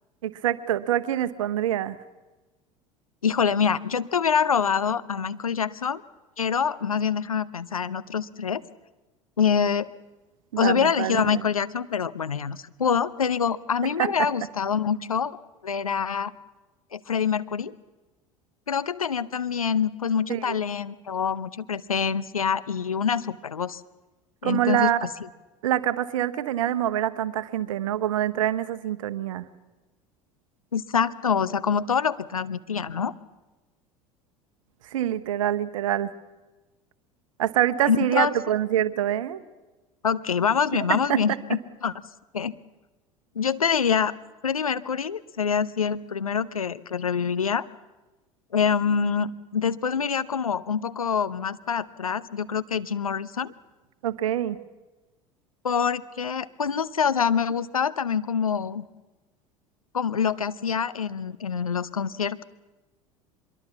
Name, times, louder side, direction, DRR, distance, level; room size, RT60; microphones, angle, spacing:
voice 1, 0.2-2.0 10.5-11.4 14.0-14.1 20.3-20.6 24.4-25.1 25.6-29.4 34.8-36.1 37.4-39.4 40.9-41.2 54.0-54.6, right 12 dB, 70° right, 13 dB, 1.1 m, -25 dB
voice 2, 3.2-6.0 6.4-8.6 9.4-9.9 10.6-15.4 15.6-16.3 16.9-17.7 18.7-23.8 24.4-24.9 30.7-33.1 37.9-38.3 40.0-41.9 42.3-42.5 43.4-44.1 44.4-47.6 48.5-53.5 55.6-58.9 59.9-62.4, left 7 dB, 90° left, 15 dB, 0.7 m, -25 dB
24.0 x 22.5 x 7.1 m, 1.2 s
figure-of-eight pair, 75°, 17 cm